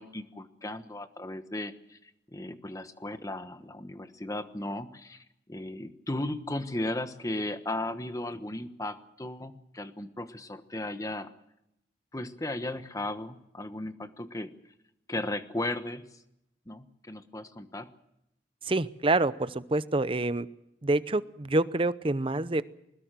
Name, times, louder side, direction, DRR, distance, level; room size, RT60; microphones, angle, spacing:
voice 1, 0.0-11.3 12.1-14.5 15.1-16.1 16.7-17.9, left 1 dB, 20° left, 10 dB, 1.2 m, -36 dB
voice 2, 18.6-20.5 20.8-22.6, right 2 dB, 30° right, 15 dB, 0.7 m, -27 dB
21.5 x 20.0 x 7.6 m, 0.83 s
head